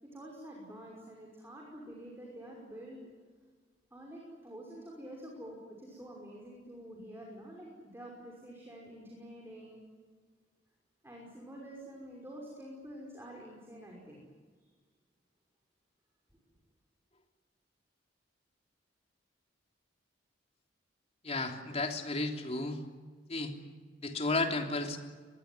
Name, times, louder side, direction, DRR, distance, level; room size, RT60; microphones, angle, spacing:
voice 1, 0.0-3.0 3.9-9.8 11.0-14.2, right 1 dB, 15° right, -2 dB, 5.8 m, -48 dB
voice 2, 21.2-22.8 23.3-23.5 24.0-25.0, left 2 dB, 35° left, 4 dB, 3.3 m, -33 dB
24.0 x 22.0 x 9.7 m, 1.5 s
head